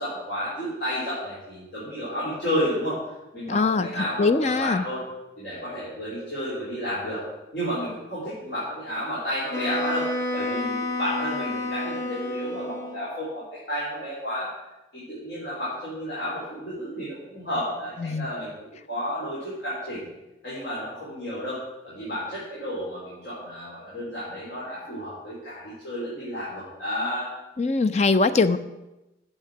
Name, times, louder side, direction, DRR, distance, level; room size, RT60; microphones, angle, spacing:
voice 1, 0.0-3.0 3.3-5.0 5.4-7.2 7.5-14.5 14.9-20.0 20.4-21.6 21.8-27.3, equal, 65° left, -9 dB, 3.8 m, -31 dB
voice 2, 3.5-4.8 18.0-18.3 27.6-28.6, left 3 dB, 40° left, 11 dB, 0.5 m, -22 dB
Wind instrument woodwind instrument, 9.5-13.1, left 1 dB, 15° left, 0.9 m, -29 dB
8.7 x 6.6 x 7.2 m, 0.99 s
head